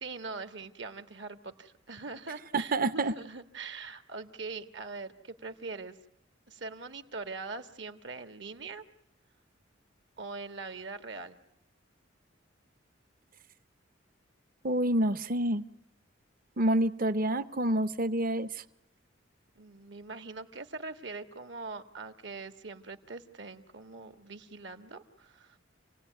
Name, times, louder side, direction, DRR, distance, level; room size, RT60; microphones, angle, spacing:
voice 1, 0.0-6.0 6.5-8.8 10.2-11.4 19.6-25.6, right 3 dB, 65° right, 9 dB, 1.6 m, -42 dB
voice 2, 2.5-3.1 14.6-15.6 16.6-18.6, right 1 dB, 45° right, 14 dB, 0.9 m, -28 dB
28.5 x 17.5 x 9.3 m, 0.91 s
head